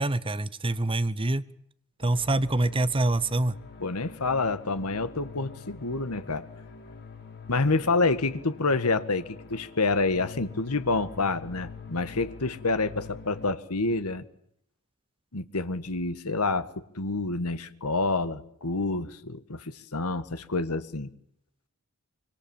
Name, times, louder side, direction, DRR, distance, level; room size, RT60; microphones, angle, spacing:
voice 1, 0.0-1.4 2.0-3.5, right 2 dB, 25° right, 14 dB, 0.9 m, -25 dB
sound 1, 2.0-13.6, left 4 dB, 50° left, 3.1 m, -45 dB
voice 2, 3.8-6.4 7.5-14.2 15.3-16.7 16.9-21.1, left 3 dB, 80° left, 11 dB, 1.7 m, -28 dB
25.5 x 25.0 x 7.2 m, 0.71 s
head